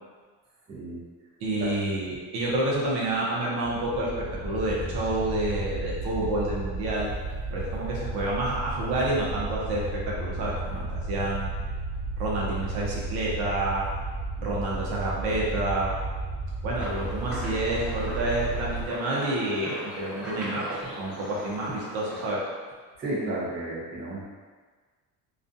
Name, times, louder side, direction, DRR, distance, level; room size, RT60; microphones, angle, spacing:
voice 1, 0.7-1.0 1.6-1.7 10.7-10.8 23.0-24.2, right 1 dB, 25° right, -7 dB, 0.7 m, -32 dB
voice 2, 1.4-7.1 7.5-11.5 12.2-13.8 14.4-15.9 16.6-22.4, right 1 dB, 70° right, -5 dB, 0.8 m, -29 dB
sound 1, 3.6-18.9, right 2 dB, 20° left, 0.7 m, -33 dB
sound 2, 16.8-22.3, equal, 5° right, 1.0 m, -39 dB
2.4 x 2.3 x 2.6 m, 1.5 s
cardioid pair, 120°, 38 cm